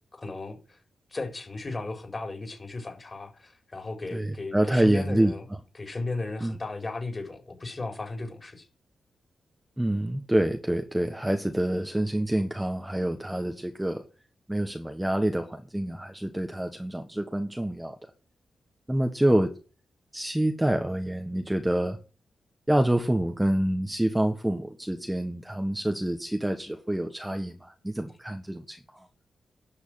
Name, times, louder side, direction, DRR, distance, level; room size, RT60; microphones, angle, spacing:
voice 1, 0.1-0.8 1.1-5.4 5.7-8.7, left 3 dB, 35° left, 4.4 m, -35 dB
voice 2, 4.1-5.3 6.4-6.6 9.8-14.0 14.5-17.9 18.9-19.5 20.1-22.0 22.7-29.1, right 1 dB, 10° right, 1.4 m, -27 dB
12.0 x 6.6 x 9.2 m
cardioid pair, 75°, 0 cm